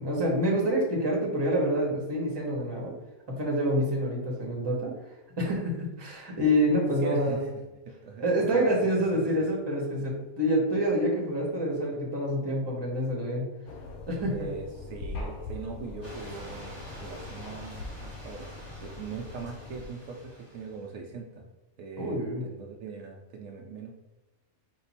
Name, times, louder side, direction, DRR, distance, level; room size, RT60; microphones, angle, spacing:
voice 1, 0.0-2.9 3.3-4.9 5.4-7.4 8.2-13.5 14.1-14.5 22.0-22.4, equal, 20° right, -2 dB, 0.9 m, -27 dB
voice 2, 7.0-7.5 7.9-9.5 14.3-18.5 18.8-21.4 21.8-23.9, right 4 dB, 75° right, 1 dB, 0.9 m, -41 dB
sound 1, 13.7-19.9, left 3 dB, 85° left, 1.1 m, -42 dB
sound 2, 15.1-16.1 17.4-18.3, equal, 40° left, 1.3 m, -49 dB
sound 3, 16.0-20.9, equal, 10° left, 1.3 m, -47 dB
4.4 x 2.4 x 4.2 m, 1.0 s
omnidirectional pair, 1.5 m